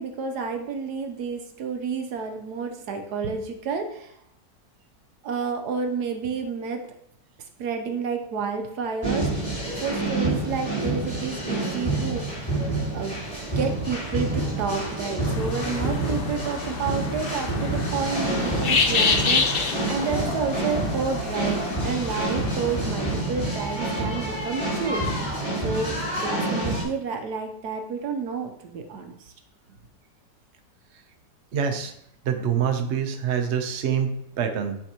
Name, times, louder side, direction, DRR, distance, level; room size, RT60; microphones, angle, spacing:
voice 1, 0.0-4.1 5.2-6.9 7.6-9.3 9.8-12.6 12.9-13.2 13.6-25.3 25.6-26.0 26.2-29.3, right 5 dB, 70° right, 5 dB, 1.3 m, -30 dB
sound 1, 9.0-26.8, right 2 dB, 20° left, 2.9 m, -28 dB
sound 2, 15.2-23.2, left 4 dB, 60° left, 0.6 m, -28 dB
voice 2, 31.5-31.9 32.2-34.8, right 7 dB, 55° right, 5 dB, 0.8 m, -25 dB
9.6 x 4.5 x 2.9 m, 0.74 s
omnidirectional pair, 1.9 m